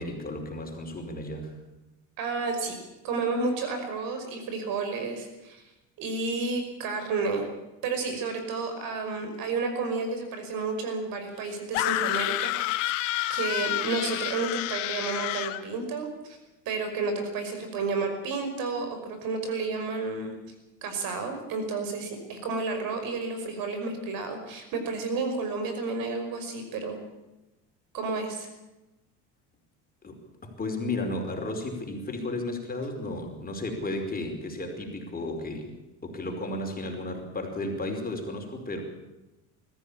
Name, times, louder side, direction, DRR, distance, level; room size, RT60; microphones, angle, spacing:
voice 1, 0.0-1.5 30.0-35.8 36.0-38.8, left 2 dB, 25° left, 3 dB, 5.0 m, -33 dB
voice 2, 2.2-2.8 3.0-5.6 6.0-7.5 7.8-12.9 13.3-16.1 16.7-20.3 20.8-27.0 27.9-28.5, right 3 dB, 65° right, 7 dB, 5.5 m, -31 dB
sound 1, 11.7-15.6, left 16 dB, 90° left, 1.2 m, -29 dB
21.0 x 14.5 x 8.8 m, 0.99 s
supercardioid pair, 100°, 37 cm